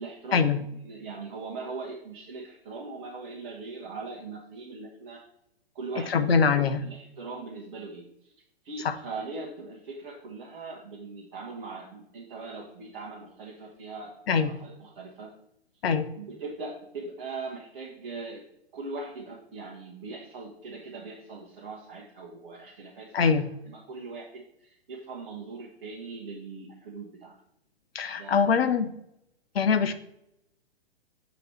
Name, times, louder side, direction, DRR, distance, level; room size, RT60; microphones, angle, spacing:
voice 1, 0.0-5.2 5.7-8.3 8.6-14.1 14.4-15.3 16.1-18.4 18.7-27.3 28.1-28.7, right 3 dB, 50° right, -4 dB, 1.6 m, -40 dB
voice 2, 6.1-6.8 8.8-8.9 14.3-14.5 15.8-16.1 23.1-23.4 27.9-28.9 29.5-29.9, left 6 dB, 65° left, 10 dB, 0.9 m, -23 dB
7.9 x 4.2 x 4.4 m, 0.78 s
figure-of-eight pair, 115°, 32 cm